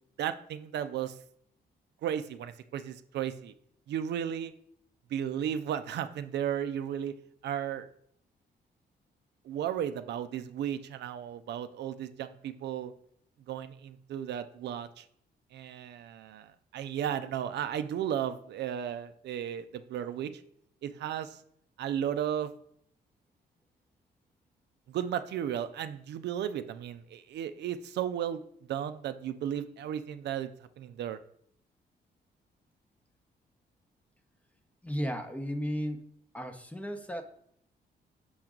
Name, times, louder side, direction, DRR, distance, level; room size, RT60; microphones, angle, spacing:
voice 1, 0.2-1.1 2.0-3.5 3.9-4.5 5.1-7.1 7.4-7.9 9.4-12.9 13.5-15.0 15.5-20.3 20.8-21.4 21.8-22.5 24.9-28.4 28.7-30.5 30.8-31.2, right 9 dB, 75° right, 11 dB, 0.5 m, -34 dB
voice 2, 34.8-36.0 36.3-37.2, equal, 10° left, 7 dB, 0.7 m, -34 dB
6.3 x 4.5 x 3.7 m, 0.67 s
cardioid pair, 110°, 18 cm